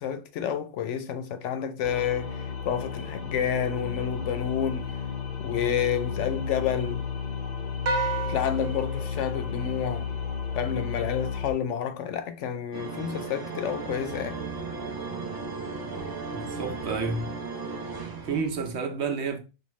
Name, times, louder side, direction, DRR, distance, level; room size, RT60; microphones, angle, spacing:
voice 1, 0.0-4.9 5.4-7.0 8.3-10.1 10.5-14.4, left 8 dB, 75° left, 0.9 m, -29 dB
sound 1, 1.8-11.5, left 6 dB, 50° left, 0.6 m, -33 dB
sound 2, 7.9-10.4, right 3 dB, 85° right, 1.2 m, -33 dB
sound 3, 12.7-18.7, right 4 dB, 25° right, 0.5 m, -36 dB
voice 2, 16.3-17.3 18.2-19.4, right 4 dB, 65° right, 1.0 m, -30 dB
5.3 x 2.2 x 3.1 m
omnidirectional pair, 1.3 m